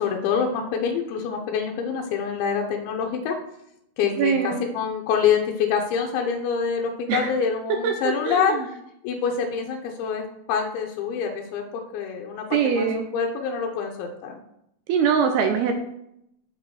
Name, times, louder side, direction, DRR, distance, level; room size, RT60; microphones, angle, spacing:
voice 1, 0.0-3.4 4.0-8.6 9.0-11.6 11.9-14.4, left 6 dB, 90° left, 1 dB, 3.2 m, -26 dB
voice 2, 4.2-4.6 7.1-7.3 7.8-7.9 8.3-8.5 12.5-13.1 14.9-15.8, right 7 dB, 80° right, 5 dB, 2.3 m, -22 dB
8.1 x 5.1 x 6.4 m, 0.79 s
omnidirectional pair, 5.1 m